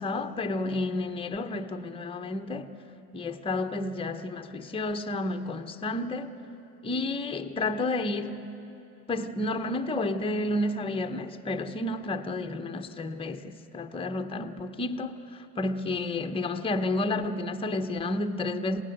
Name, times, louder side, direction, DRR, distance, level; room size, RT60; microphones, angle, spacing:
voice 1, 0.0-2.7 3.1-6.4 6.8-8.5 9.1-18.8, left 2 dB, 10° left, 0.8 m, -31 dB
27.5 x 18.0 x 6.7 m
hypercardioid pair, 90°, 46 cm